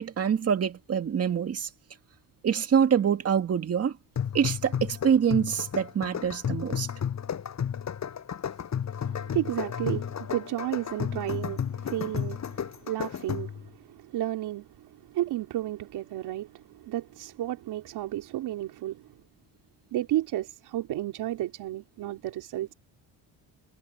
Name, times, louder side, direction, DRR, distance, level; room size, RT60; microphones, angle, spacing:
voice 1, 0.0-1.7 2.4-3.9 4.3-6.9, right 7 dB, 40° right, 2.0 m, -25 dB
sound 1, 4.2-13.7, left 8 dB, 45° left, 7.8 m, -33 dB
voice 2, 9.0-19.1 19.9-22.7, right 14 dB, 80° right, 3.7 m, -32 dB
cardioid pair, 130°, 39 cm